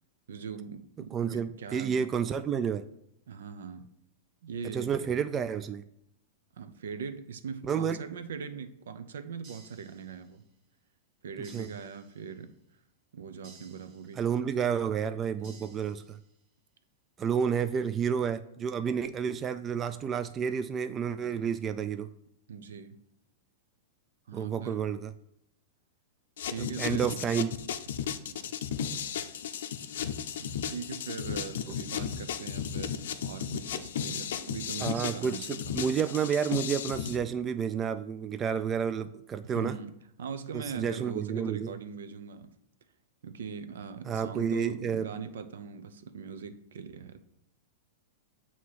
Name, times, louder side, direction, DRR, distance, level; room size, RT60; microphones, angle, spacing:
voice 1, 0.3-2.0 3.3-3.9 4.4-5.1 6.5-10.4 11.2-12.6 13.1-14.2 15.4-15.8 22.5-23.0 24.3-24.9 26.5-27.3 28.1-28.5 30.4-35.8 39.4-42.5 43.2-47.2, right 6 dB, 80° right, 10 dB, 0.6 m, -41 dB
voice 2, 1.1-2.8 4.7-5.8 7.6-8.0 11.5-11.7 14.2-16.2 17.2-22.1 24.3-25.1 26.8-27.5 31.7-31.8 34.8-39.8 40.5-41.7 44.1-45.1, right 7 dB, 25° right, 10 dB, 0.3 m, -30 dB
sound 1, 9.4-10.5 11.4-12.5 13.4-14.5 15.4-16.5, right 4 dB, 45° right, 1.4 m, -57 dB
sound 2, 26.4-37.2, left 8 dB, 70° left, 0.5 m, -35 dB
7.3 x 2.8 x 4.7 m, 0.77 s
hypercardioid pair, 115°, 0 cm